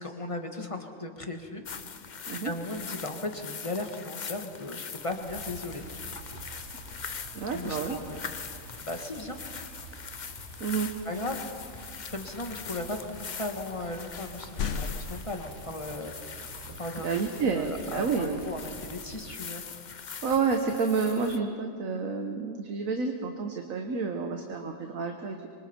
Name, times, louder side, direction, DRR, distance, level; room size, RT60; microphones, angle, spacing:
voice 1, 0.0-1.7 2.2-5.8 7.5-8.2 8.8-9.4 11.1-19.6, left 2 dB, 25° left, 4 dB, 1.7 m, -37 dB
sound 1, 1.6-21.4, left 6 dB, 40° left, 0.7 m, -42 dB
sound 2, 5.3-19.4, right 5 dB, 55° right, 1.4 m, -48 dB
sound 3, 6.8-7.7 11.2-11.3 13.4-13.5 14.1-15.2, left 5 dB, 60° left, 1.2 m, -37 dB
voice 2, 7.3-8.0 10.6-10.9 17.0-18.4 20.2-25.5, right 5 dB, 75° right, 4 dB, 1.6 m, -29 dB
26.0 x 24.5 x 4.5 m, 2.2 s
omnidirectional pair, 1.5 m